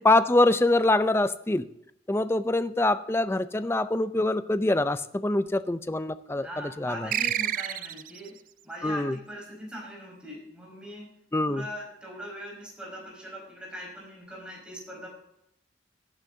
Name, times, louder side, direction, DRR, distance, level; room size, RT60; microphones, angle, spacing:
voice 1, 0.0-1.7 2.1-7.1 8.8-9.2 11.3-11.6, left 2 dB, 15° left, 13 dB, 0.4 m, -24 dB
voice 2, 6.4-8.4 8.6-11.1 11.4-15.1, equal, 5° right, -2 dB, 5.0 m, -41 dB
sound 1, 7.1-8.3, right 11 dB, 45° right, 0.4 m, -29 dB
17.5 x 10.5 x 2.7 m, 0.80 s
head